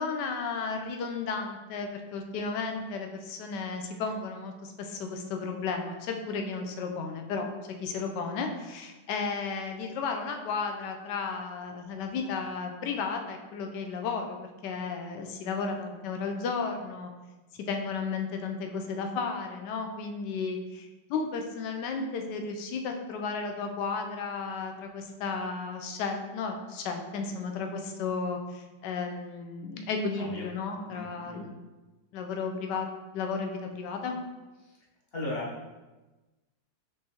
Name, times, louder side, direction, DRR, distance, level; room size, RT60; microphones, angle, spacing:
voice 1, 0.0-7.5 7.8-17.1 17.5-31.5 32.1-32.9 33.1-34.2, left 4 dB, 75° left, 4 dB, 1.2 m, -33 dB
voice 2, 30.9-31.4 34.6-34.8 35.1-35.5, left 1 dB, 40° left, -5 dB, 1.0 m, -37 dB
5.3 x 3.2 x 2.9 m, 1.1 s
omnidirectional pair, 1.9 m